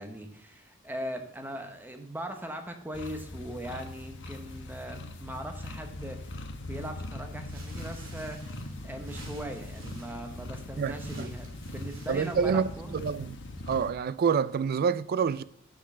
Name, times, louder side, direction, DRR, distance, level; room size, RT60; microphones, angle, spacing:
voice 1, 0.0-8.5 8.8-13.0, right 1 dB, 10° right, 0.9 m, -40 dB
sound 1, 2.9-13.9, left 1 dB, 60° left, 1.0 m, -41 dB
sound 2, 7.4-13.1, right 2 dB, 65° right, 2.4 m, -51 dB
voice 2, 10.8-11.3 12.1-13.4 13.7-15.4, right 6 dB, 45° right, 0.3 m, -27 dB
6.1 x 6.1 x 6.1 m
head